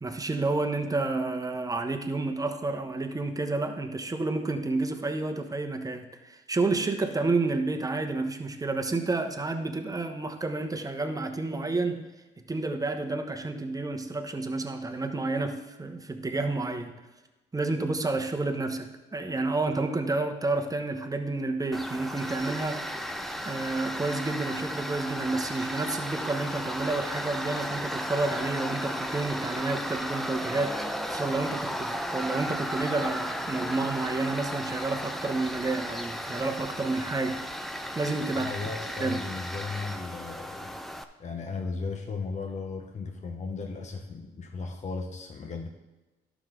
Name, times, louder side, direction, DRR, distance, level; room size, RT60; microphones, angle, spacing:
voice 1, 0.0-12.1 12.4-17.0 17.5-23.0 23.4-37.6 37.9-38.5 39.0-39.2, right 3 dB, 15° right, 5 dB, 1.0 m, -30 dB
Tools, 21.7-41.0, equal, ahead, 0.6 m, -34 dB
voice 2, 38.3-40.7 41.2-45.7, left 4 dB, 35° left, 4 dB, 0.8 m, -36 dB
11.5 x 6.1 x 3.8 m, 1.1 s
cardioid pair, 90°, 20 cm